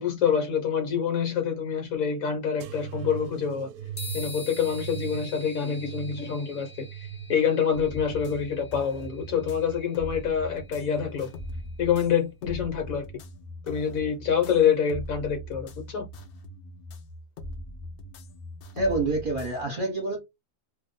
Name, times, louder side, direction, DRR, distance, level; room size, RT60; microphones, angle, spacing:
voice 1, 0.0-3.7 4.1-6.9 7.3-11.3 11.8-13.0 13.7-16.1, left 7 dB, 65° left, 1.2 m, -26 dB
sound 1, 2.6-9.8 10.3-11.1 11.9-12.4 13.4-13.5, right 8 dB, 80° right, 1.0 m, -41 dB
sound 2, 4.0-11.6, left 2 dB, 35° left, 0.9 m, -46 dB
sound 3, 7.7-19.6, left 1 dB, 85° left, 0.5 m, -41 dB
voice 2, 18.7-20.2, right 2 dB, 35° right, 1.1 m, -27 dB
2.6 x 2.2 x 3.8 m
omnidirectional pair, 1.6 m